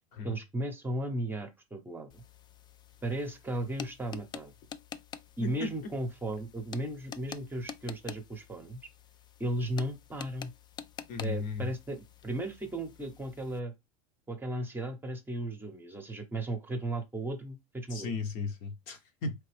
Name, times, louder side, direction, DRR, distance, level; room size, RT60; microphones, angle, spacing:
voice 1, 0.2-2.2 3.0-4.5 5.4-8.8 9.4-10.5 11.2-13.7 14.3-18.1, right 1 dB, 10° right, 0.9 m, -35 dB
sound 1, 2.1-13.6, left 7 dB, 25° left, 0.4 m, -48 dB
voice 2, 5.4-5.9 11.1-11.7 17.9-19.3, left 4 dB, 55° left, 1.1 m, -35 dB
4.1 x 3.4 x 3.4 m
hypercardioid pair, 105°, 18 cm